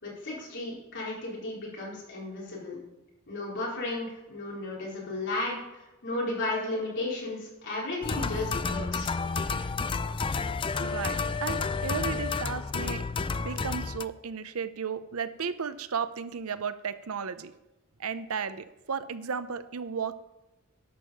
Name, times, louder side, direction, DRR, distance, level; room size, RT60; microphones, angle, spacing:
voice 1, 0.0-2.8 3.3-9.1, left 2 dB, 55° left, -5 dB, 4.4 m, -34 dB
sound 1, 8.0-14.0, left 4 dB, 25° left, 0.4 m, -30 dB
voice 2, 10.8-13.0 13.4-17.5 18.0-20.1, right 6 dB, 80° right, 12 dB, 0.7 m, -34 dB
11.5 x 6.5 x 7.1 m, 0.97 s
head